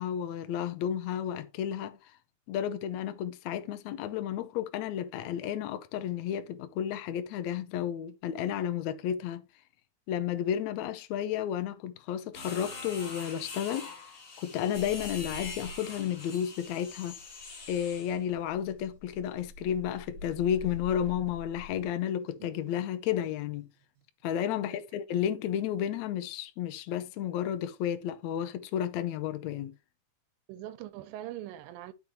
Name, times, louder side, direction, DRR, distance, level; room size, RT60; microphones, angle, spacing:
voice 1, 0.0-2.0 2.5-9.4 10.1-13.9 14.4-17.2 17.7-23.7 24.2-29.7, left 10 dB, 75° left, 1.7 m, -32 dB
sound 1, 12.3-18.2, left 4 dB, 55° left, 0.8 m, -44 dB
sound 2, 14.7-16.2 16.4-21.9 23.6-24.0, left 3 dB, 60° right, 2.0 m, -46 dB
voice 2, 30.5-31.9, right 13 dB, 85° right, 2.4 m, -42 dB
10.5 x 5.4 x 3.0 m
omnidirectional pair, 4.1 m